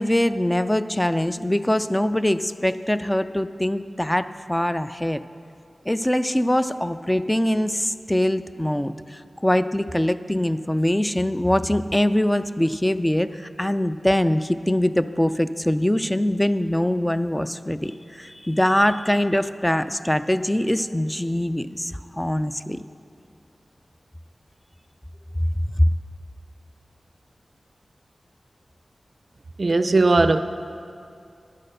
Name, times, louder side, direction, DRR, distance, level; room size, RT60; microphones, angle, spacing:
voice 1, 0.0-5.2 5.9-22.8 25.8-25.9, left 1 dB, 10° left, 11 dB, 0.3 m, -23 dB
voice 2, 29.6-30.4, right 3 dB, 55° right, 11 dB, 0.4 m, -18 dB
10.5 x 6.5 x 6.5 m, 2.4 s
cardioid pair, 50°, 0 cm